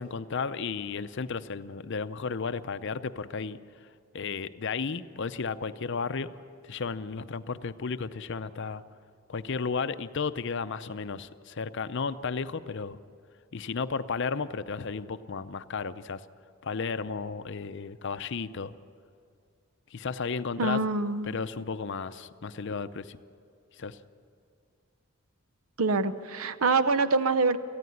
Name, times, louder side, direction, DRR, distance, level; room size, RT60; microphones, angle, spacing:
voice 1, 0.0-3.6 4.1-6.3 6.6-8.8 9.3-13.0 13.5-16.2 16.6-18.7 19.9-20.8 21.2-23.2 23.8-24.0, left 5 dB, 55° left, 13 dB, 0.6 m, -33 dB
voice 2, 20.6-21.3 25.8-27.6, right 3 dB, 75° right, 12 dB, 0.8 m, -25 dB
19.0 x 14.0 x 9.8 m, 2.3 s
head